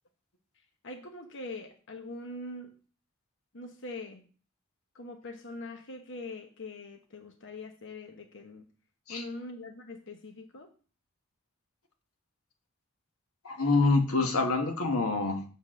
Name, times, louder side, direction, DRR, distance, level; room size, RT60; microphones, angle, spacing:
voice 1, 0.8-2.7 3.5-4.2 4.9-8.7 9.1-10.7, left 2 dB, 60° left, 5 dB, 1.1 m, -42 dB
voice 2, 13.4-15.4, left 3 dB, 90° left, 5 dB, 1.2 m, -26 dB
7.5 x 4.0 x 6.3 m, 0.38 s
head